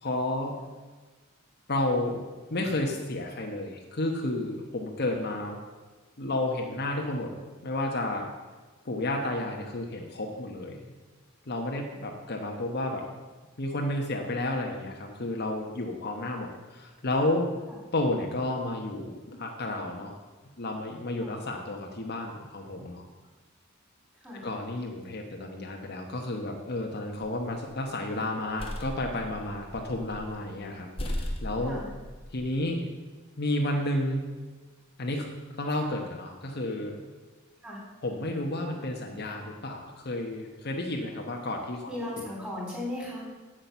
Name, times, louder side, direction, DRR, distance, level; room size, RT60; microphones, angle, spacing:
voice 1, 0.0-0.6 1.7-5.6 6.2-7.3 7.6-8.3 8.8-10.9 11.5-13.0 13.6-17.5 17.9-20.2 20.6-23.0 24.4-31.8 32.3-32.8 33.4-34.2 35.0-35.3 35.6-37.0 38.0-41.9, left 1 dB, 50° left, 1 dB, 1.1 m, -31 dB
voice 2, 24.1-24.5 31.6-31.9 37.6-37.8 41.9-43.2, left 1 dB, 5° right, -4 dB, 3.8 m, -37 dB
sound 1, 27.2-27.7 28.2-30.4 30.6-30.7 31.0-32.5, equal, 25° left, 1.2 m, -37 dB
8.7 x 7.8 x 6.8 m, 1.3 s
head